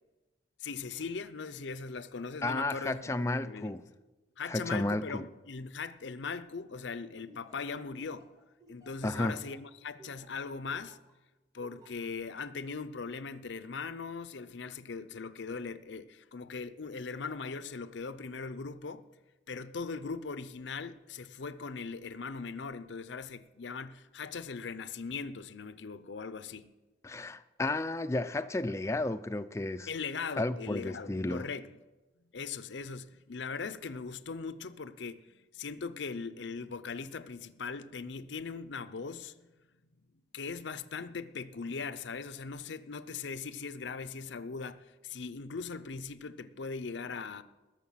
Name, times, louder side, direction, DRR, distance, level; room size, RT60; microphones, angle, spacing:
voice 1, 0.6-3.7 4.4-8.3 8.7-11.0 11.5-19.1 19.5-26.7 29.9-31.7 32.3-39.3 40.3-47.4, left 5 dB, 75° left, 0.6 m, -40 dB
voice 2, 2.4-3.8 4.5-5.2 9.0-9.3 27.0-29.9 30.4-31.5, left 2 dB, 15° left, 0.4 m, -32 dB
Laughter, 7.3-11.1 11.6-12.0, right 2 dB, 20° right, 1.1 m, -56 dB
20.5 x 6.8 x 5.7 m
head